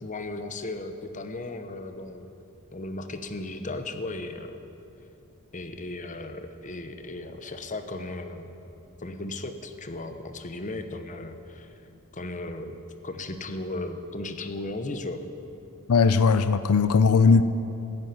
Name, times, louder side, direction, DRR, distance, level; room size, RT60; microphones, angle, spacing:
voice 1, 0.0-2.3 2.7-4.6 5.5-8.5 9.0-11.8 12.1-12.8 13.0-15.2, left 2 dB, 35° left, 8 dB, 1.0 m, -36 dB
voice 2, 15.9-17.4, left 5 dB, 85° left, 13 dB, 0.5 m, -19 dB
14.5 x 10.0 x 9.5 m, 2.9 s
head